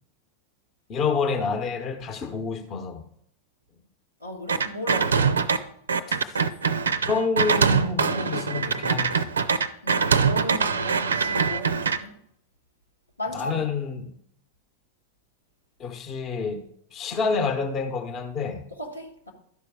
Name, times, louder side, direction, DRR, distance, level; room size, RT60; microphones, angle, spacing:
voice 1, 0.9-3.0 6.1-6.4 7.1-9.3 13.3-14.1 15.8-16.6 16.9-18.7, left 5 dB, 30° left, 0.9 m, -28 dB
voice 2, 4.2-5.5 9.8-12.1 13.2-13.6 18.8-19.3, left 1 dB, 85° left, 1.3 m, -35 dB
sound 1, 4.5-5.6 5.9-12.0, right 6 dB, 70° right, 0.5 m, -23 dB
11.5 x 5.0 x 4.8 m
figure-of-eight pair, 90°, 0 cm